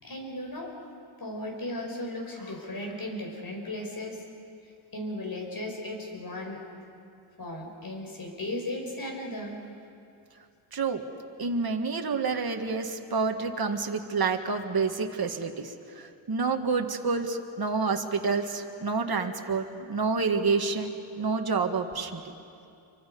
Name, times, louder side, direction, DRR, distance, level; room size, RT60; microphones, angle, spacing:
voice 1, 0.0-0.7 1.2-4.2 4.9-6.6 7.4-9.6, left 1 dB, 45° left, 1 dB, 5.7 m, -36 dB
voice 2, 11.4-22.2, right 4 dB, 50° right, 4 dB, 1.8 m, -28 dB
28.0 x 24.5 x 5.4 m, 2.5 s
cardioid pair, 80°, 48 cm